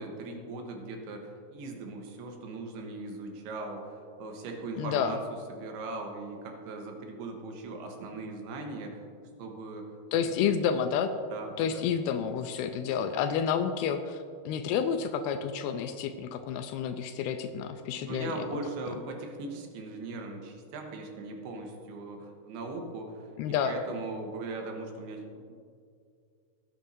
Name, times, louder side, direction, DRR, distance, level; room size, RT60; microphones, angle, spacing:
voice 1, 0.0-5.2 5.5-9.1 9.4-9.9 10.1-10.2 11.3-11.8 18.1-23.3 23.6-25.6, right 3 dB, 80° right, 2 dB, 3.1 m, -39 dB
voice 2, 4.8-5.2 10.1-11.1 11.6-18.5 23.4-23.8, left 7 dB, 80° left, 8 dB, 2.3 m, -30 dB
17.5 x 9.0 x 2.7 m, 2.3 s
omnidirectional pair, 4.7 m